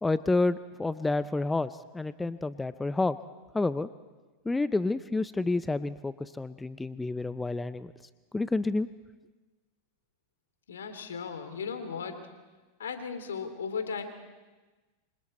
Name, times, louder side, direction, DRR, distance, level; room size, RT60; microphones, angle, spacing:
voice 1, 0.0-3.2 3.5-3.9 4.4-7.9 8.3-8.9, left 3 dB, 10° left, 15 dB, 0.6 m, -29 dB
voice 2, 10.7-12.3 12.8-14.0, left 6 dB, 75° left, 8 dB, 2.9 m, -36 dB
27.5 x 26.0 x 4.4 m, 1.2 s
hypercardioid pair, 90°, 0 cm